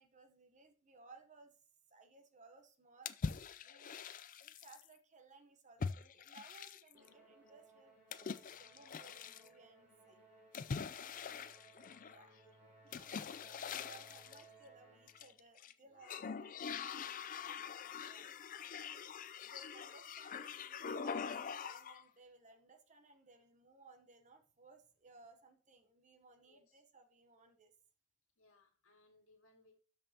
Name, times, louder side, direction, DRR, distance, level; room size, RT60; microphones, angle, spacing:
voice 1, 0.0-1.5 1.9-3.1 3.6-4.0 4.4-10.2 12.0-12.3 12.6-18.3 19.4-27.7, right 3 dB, 35° right, 0.9 m, -62 dB
sound 1, 3.1-4.9 5.8-7.1 8.1-9.5 10.5-12.2 12.9-14.4 15.1-15.7 16.0-22.0, left 6 dB, 35° left, 0.4 m, -44 dB
Musical instrument, 6.9-15.4, right 3 dB, 10° right, 4.1 m, -64 dB
voice 2, 11.1-11.5 12.1-12.8 15.8-16.1 18.7-19.1 26.5-26.8 28.4-29.8, left 2 dB, 65° left, 2.1 m, -70 dB
12.5 x 5.3 x 2.8 m
head